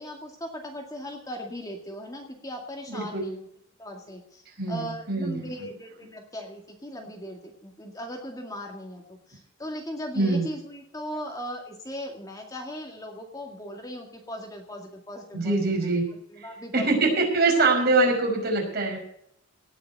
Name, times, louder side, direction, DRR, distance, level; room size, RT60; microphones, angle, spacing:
voice 1, 0.0-3.5 3.8-16.9 17.5-18.1, equal, 15° left, 1 dB, 2.1 m, -38 dB
voice 2, 2.9-3.3 4.6-5.5 10.1-10.5 15.3-16.1 16.4-16.5 16.7-19.0, right 3 dB, 45° right, -1 dB, 5.5 m, -24 dB
18.0 x 6.6 x 8.1 m, 0.72 s
head